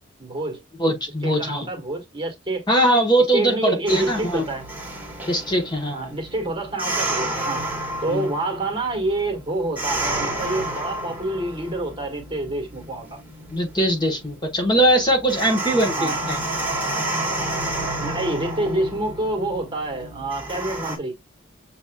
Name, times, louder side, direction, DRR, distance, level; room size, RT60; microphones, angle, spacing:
voice 1, 0.2-0.6 1.2-2.6 3.3-4.6 5.9-7.7 8.0-13.2 16.0-16.2 18.0-21.1, right 2 dB, 25° right, 1.5 m, -27 dB
voice 2, 0.8-1.7 2.7-4.4 5.3-6.1 8.1-8.3 13.5-16.4, right 1 dB, 20° left, 1.0 m, -21 dB
sound 1, 3.9-21.0, right 2 dB, 10° right, 1.6 m, -30 dB
6.9 x 2.9 x 2.2 m
head